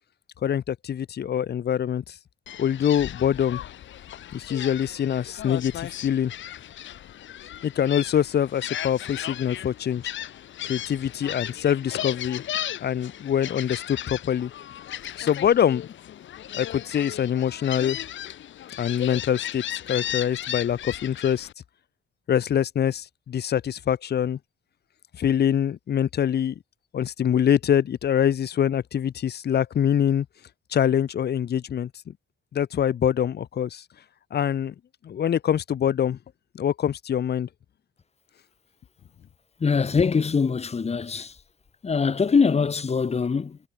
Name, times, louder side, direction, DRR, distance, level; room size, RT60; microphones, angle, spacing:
voice 1, 0.4-2.1 2.6-3.6 4.3-6.3 7.6-10.1 10.6-12.4 12.8-14.5 15.2-15.9 16.5-18.0 18.8-19.6 19.9-21.5 22.3-24.4 25.2-26.5 26.9-30.2 30.7-31.9 32.5-33.8 34.3-34.7 35.0-36.2 36.6-37.5, left 9 dB, 55° left, 1.6 m, -24 dB
Gull seagull, 2.5-21.5, left 11 dB, 70° left, 5.0 m, -36 dB
voice 2, 39.6-41.3 41.8-43.6, left 5 dB, 30° left, 1.5 m, -23 dB
cardioid pair, 90°, 20 cm